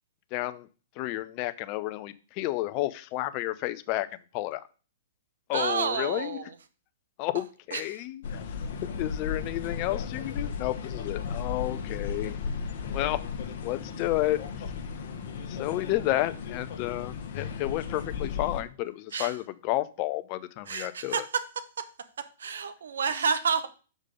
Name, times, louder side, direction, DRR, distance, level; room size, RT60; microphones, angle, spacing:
voice 1, 0.3-0.7 1.0-4.6 5.5-6.4 7.2-8.6 9.0-12.4 12.9-13.2 13.6-14.7 15.5-21.2, left 17 dB, 40° left, 14 dB, 0.6 m, -31 dB
voice 2, 5.5-6.5 7.7-8.0 19.1-19.4 20.7-21.2 22.4-23.7, right 6 dB, 70° right, 11 dB, 0.9 m, -29 dB
sound 1, 8.2-18.6, left 6 dB, 60° left, 1.1 m, -35 dB
6.5 x 5.1 x 5.1 m, 0.36 s
hypercardioid pair, 115°, 0 cm